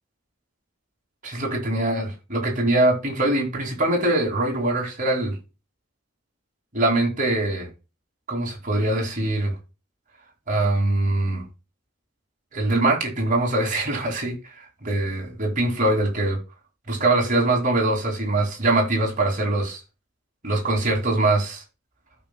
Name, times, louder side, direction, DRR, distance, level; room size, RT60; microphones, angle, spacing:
voice 1, 1.2-5.4 6.7-7.7 8.3-9.5 10.5-11.4 12.5-16.4 16.9-19.8 20.4-21.6, right 2 dB, 40° right, 2.6 m, -23 dB
15.5 x 5.3 x 2.3 m
head